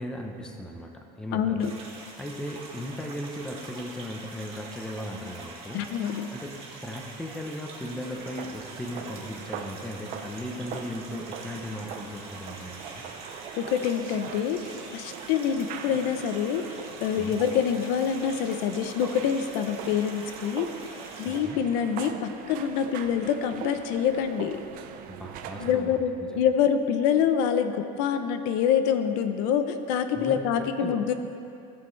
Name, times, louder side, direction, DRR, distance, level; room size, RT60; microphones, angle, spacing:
voice 1, 0.0-1.7 2.2-5.8 6.3-6.5 6.8-13.0 17.2-17.4 21.3-21.6 25.1-26.4 30.1-31.0, left 1 dB, 5° left, 2 dB, 0.7 m, -37 dB
voice 2, 1.3-1.7 5.7-6.3 13.6-14.6 14.9-16.6 17.0-20.7 21.2-24.6 25.6-31.1, left 8 dB, 70° left, 9 dB, 0.7 m, -26 dB
sound 1, 1.6-21.4, right 3 dB, 30° right, 1.8 m, -44 dB
sound 2, 8.2-25.7, right 8 dB, 45° right, 0.6 m, -42 dB
17.5 x 7.0 x 3.2 m, 2.6 s
cardioid pair, 160°, 20 cm